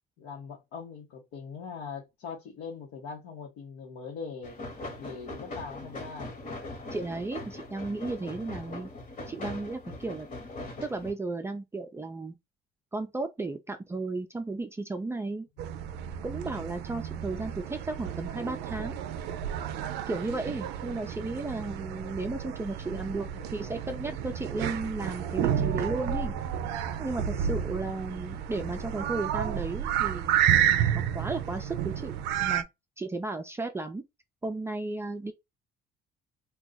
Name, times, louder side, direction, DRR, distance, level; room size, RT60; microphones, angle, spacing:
voice 1, 0.2-4.6 5.0-6.3 16.4-16.7 22.8-24.1, left 5 dB, 85° left, 0.9 m, -42 dB
sound 1, 4.4-11.1, left 2 dB, 50° left, 1.2 m, -41 dB
voice 2, 6.9-8.9 9.3-10.3 10.8-12.3 12.9-15.5 16.2-19.0 20.1-26.3 27.0-30.4 30.9-32.6 33.0-34.0 34.4-35.3, right 3 dB, 15° right, 0.4 m, -34 dB
sound 2, 15.6-32.6, right 10 dB, 90° right, 0.4 m, -31 dB
2.4 x 2.3 x 3.9 m
cardioid pair, 110°, 17 cm